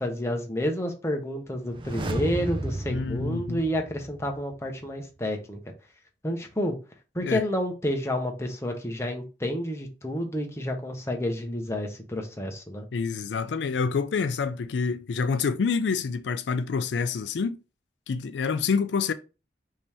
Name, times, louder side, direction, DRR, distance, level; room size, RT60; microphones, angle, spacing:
voice 1, 0.0-5.6 6.2-6.8 7.1-12.9, equal, 15° left, 0.8 m, -30 dB
sound 1, 1.6-4.5 4.8-4.9, right 1 dB, 30° right, 0.5 m, -33 dB
voice 2, 2.9-3.6 7.2-7.4 12.9-17.6 18.1-19.1, left 5 dB, 85° left, 0.4 m, -27 dB
5.2 x 2.8 x 3.4 m
head